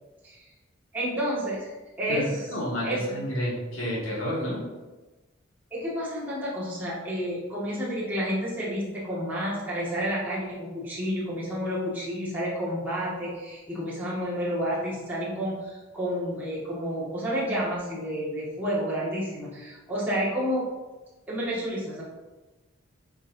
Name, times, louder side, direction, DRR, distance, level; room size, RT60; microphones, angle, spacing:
voice 1, 0.9-2.4 2.8-3.2 5.7-20.7 21.3-22.0, equal, 10° right, -9 dB, 1.9 m, -30 dB
voice 2, 2.1-4.6, equal, 90° left, -6 dB, 2.2 m, -30 dB
9.0 x 4.6 x 2.7 m, 1.2 s
head